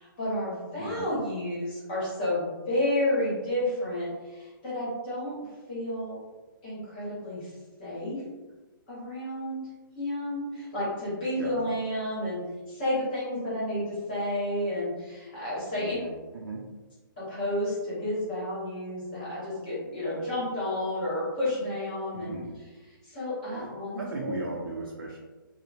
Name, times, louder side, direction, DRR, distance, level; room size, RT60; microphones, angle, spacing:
voice 1, 0.0-5.3 5.7-6.1 6.6-7.5 7.8-8.2 8.9-9.6 9.9-12.4 12.7-16.0 17.3-22.4 23.0-24.4, left 1 dB, 25° left, -9 dB, 0.9 m, -31 dB
voice 2, 0.8-1.1 11.3-11.5 15.8-16.6 22.1-22.5 23.5-23.7 24.0-25.2, right 3 dB, 85° right, -2 dB, 0.5 m, -37 dB
2.8 x 2.0 x 2.4 m, 1.3 s
hypercardioid pair, 175°, 12 cm